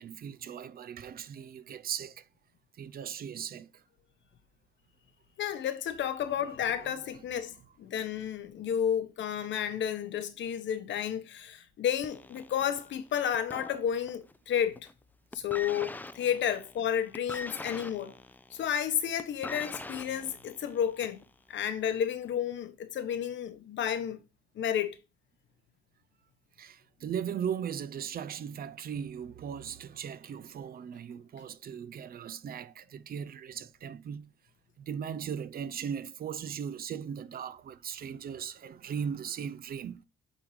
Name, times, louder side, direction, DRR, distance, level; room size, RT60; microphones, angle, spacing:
voice 1, 0.0-2.3 2.8-3.8 6.6-7.0 26.6-34.3 34.8-40.0, right 8 dB, 50° right, 0.4 m, -38 dB
voice 2, 5.4-7.5 7.8-14.9 15.3-18.1 18.5-24.2 24.6-25.0, left 9 dB, 70° left, 1.0 m, -31 dB
sound 1, 12.0-14.4 14.7-15.0 15.3-21.3 22.1-22.2, left 2 dB, 10° left, 0.4 m, -43 dB
8.6 x 3.6 x 3.1 m
cardioid pair, 90°, 20 cm